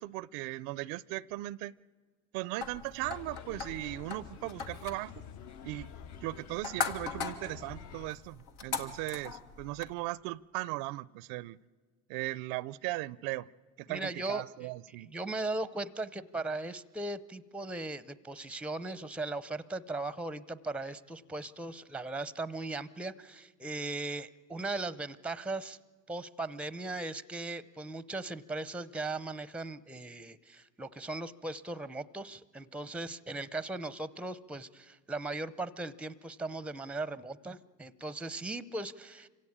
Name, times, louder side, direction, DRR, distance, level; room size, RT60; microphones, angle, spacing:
voice 1, 0.0-1.7 2.3-5.1 5.6-5.9 6.2-11.6 12.1-13.5 13.8-15.1, right 19 dB, 75° right, 22 dB, 0.6 m, -38 dB
sound 1, 2.6-9.9, left 6 dB, 80° left, 1.9 m, -41 dB
sound 2, 3.0-8.1, left 8 dB, 45° left, 0.9 m, -49 dB
voice 2, 13.9-14.7 15.1-25.8 26.1-39.3, right 2 dB, 5° right, 17 dB, 0.6 m, -38 dB
25.5 x 16.5 x 8.7 m, 1.5 s
supercardioid pair, 95°, 40 cm